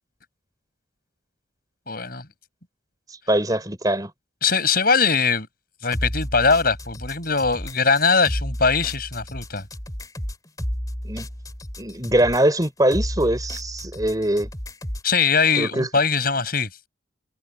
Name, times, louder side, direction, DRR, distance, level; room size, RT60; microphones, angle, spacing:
voice 1, 1.9-2.3 4.4-5.5 5.8-9.6 15.0-16.9, left 5 dB, 50° left, 6.4 m, -21 dB
voice 2, 3.3-4.1 11.0-11.3 11.8-14.5 15.6-15.9, right 1 dB, 20° right, 3.9 m, -22 dB
sound 1, 5.9-15.1, equal, 20° left, 2.9 m, -32 dB
head